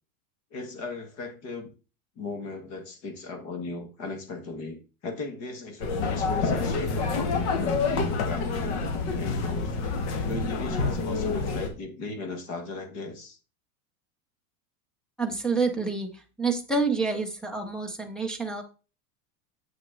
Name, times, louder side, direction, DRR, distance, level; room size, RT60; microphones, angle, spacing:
voice 1, 0.5-1.7 2.2-8.8 9.2-9.8 10.3-13.4, left 3 dB, 35° left, 6 dB, 1.5 m, -37 dB
sound 1, 5.8-11.7, left 4 dB, 50° left, 2.0 m, -27 dB
voice 2, 15.2-18.6, right 4 dB, ahead, 6 dB, 0.4 m, -28 dB
8.0 x 6.0 x 3.7 m, 0.33 s
supercardioid pair, 175°, 43 cm